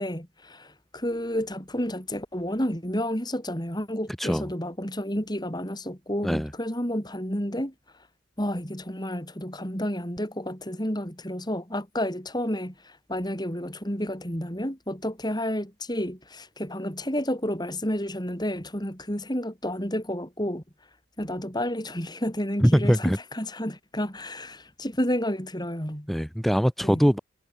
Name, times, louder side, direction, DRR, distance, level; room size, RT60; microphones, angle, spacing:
voice 1, 0.0-7.7 8.4-20.6 21.2-26.1 26.8-27.0, equal, 20° left, 7.2 m, -30 dB
voice 2, 22.6-23.2 26.1-27.2, equal, ahead, 4.9 m, -22 dB
head